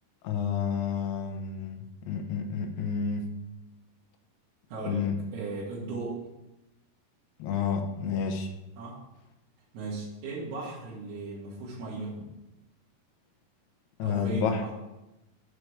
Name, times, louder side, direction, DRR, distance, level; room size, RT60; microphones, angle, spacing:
voice 1, 0.2-3.3 4.8-5.2 7.4-8.5 14.0-14.6, left 6 dB, 90° left, 5 dB, 2.9 m, -30 dB
voice 2, 4.7-5.1 5.3-6.3 8.8-9.0 9.7-12.3 14.0-14.7, right 3 dB, 90° right, -7 dB, 3.8 m, -36 dB
8.0 x 4.7 x 6.7 m, 0.97 s
omnidirectional pair, 4.4 m